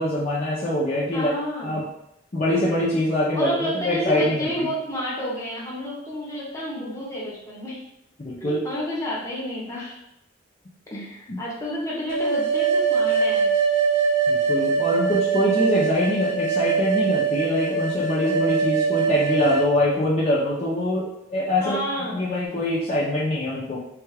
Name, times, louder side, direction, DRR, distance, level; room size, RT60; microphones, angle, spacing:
voice 1, 0.0-1.3 1.6-1.9 2.3-4.7 8.2-8.6 10.9-11.0 11.3-11.4 14.3-21.8 22.1-23.8, left 1 dB, 35° left, -8 dB, 0.6 m, -24 dB
voice 2, 1.1-1.8 3.3-7.8 8.4-10.0 10.9-13.4 21.6-22.2, equal, 15° left, -6 dB, 0.9 m, -30 dB
sound 1, 12.1-19.7, right 5 dB, 90° right, 0.8 m, -22 dB
3.3 x 2.3 x 3.2 m, 0.83 s
head